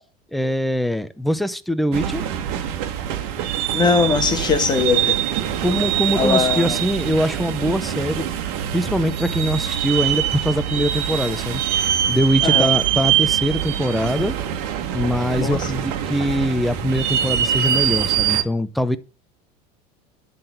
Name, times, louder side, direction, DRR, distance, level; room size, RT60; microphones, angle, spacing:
voice 1, 0.3-2.3 5.6-8.3 8.7-14.3 14.9-19.0, equal, ahead, 0.5 m, -22 dB
sound 1, 1.9-18.4, right 10 dB, 70° right, 1.6 m, -23 dB
voice 2, 3.7-5.2 6.1-6.8 12.4-12.7 15.4-15.7, left 5 dB, 20° left, 1.3 m, -20 dB
11.0 x 3.9 x 7.7 m
cardioid pair, 155°, 20 cm